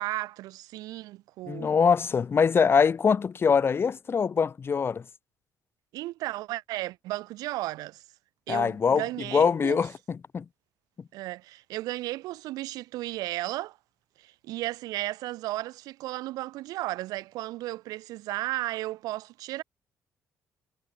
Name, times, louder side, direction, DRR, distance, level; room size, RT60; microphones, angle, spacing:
voice 1, 0.0-1.7 5.9-8.0 8.5-9.8 11.1-13.8 14.2-19.6, right 17 dB, 85° right, 5.9 m, -34 dB
voice 2, 1.5-5.0 8.5-9.0 9.3-10.4, left 6 dB, 40° left, 2.9 m, -23 dB
cardioid pair, 90°, 6 cm